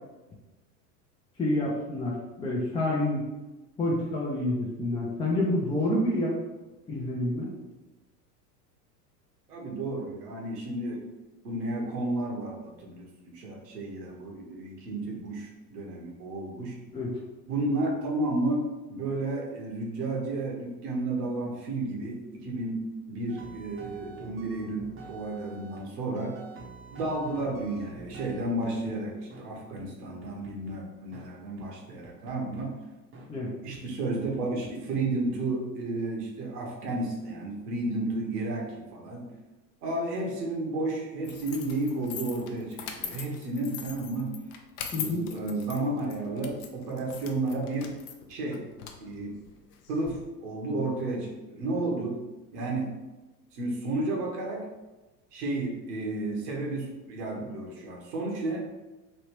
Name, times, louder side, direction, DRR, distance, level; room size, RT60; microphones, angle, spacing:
voice 1, 1.4-3.2 3.8-6.3 6.9-7.5 16.9-17.2 33.3-33.5 44.9-45.3, left 1 dB, 10° left, -5 dB, 0.5 m, -28 dB
voice 2, 9.5-11.0 11.4-16.8 17.5-22.8 23.1-26.4 26.9-32.7 33.6-39.2 39.8-44.3 44.9-48.0 48.3-48.6 49.0-49.3 49.9-52.2 52.5-52.9 53.5-54.7 55.3-58.7, right 2 dB, 70° right, -1 dB, 1.1 m, -32 dB
sound 1, 23.3-25.9 26.2-28.9 29.3-29.4 29.8-29.9 30.2-30.8 31.1-31.3 31.6-31.7 32.0-32.6 33.1-33.3 33.7-33.8 34.3-35.0, right 3 dB, 25° right, 0.7 m, -47 dB
Keys Oppening, 41.2-50.1, left 8 dB, 55° left, 0.6 m, -42 dB
3.3 x 2.7 x 3.0 m, 1.1 s
hypercardioid pair, 90°, 48 cm